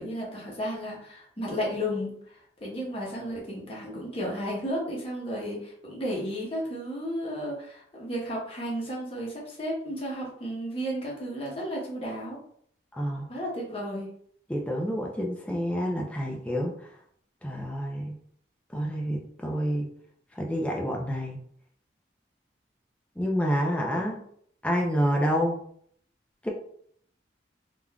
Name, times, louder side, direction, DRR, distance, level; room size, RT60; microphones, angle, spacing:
voice 1, 0.0-12.4 13.3-14.1 23.9-24.2, equal, 30° left, -3 dB, 0.8 m, -33 dB
voice 2, 12.9-13.3 14.5-16.8 17.4-18.2 18.7-19.9 20.4-21.4 23.2-24.2 24.6-25.6 26.4-26.5, equal, 5° left, 0 dB, 0.4 m, -28 dB
3.4 x 2.4 x 2.3 m, 0.64 s
head